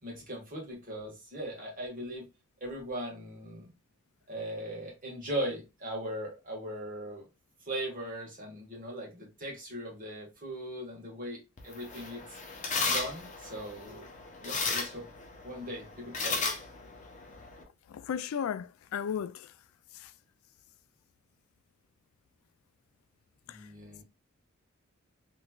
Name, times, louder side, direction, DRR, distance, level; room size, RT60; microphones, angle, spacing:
voice 1, 0.0-2.3 2.6-3.7 4.3-7.2 7.6-12.4 12.8-14.1 14.4-15.1 15.4-16.4 23.5-24.0, right 1 dB, 40° right, 1.5 m, -39 dB
sound 1, 11.6-17.6, left 4 dB, 35° left, 0.7 m, -35 dB
voice 2, 17.9-19.5 19.9-20.1 23.5-23.7, left 8 dB, 90° left, 0.3 m, -35 dB
3.2 x 3.0 x 2.3 m
head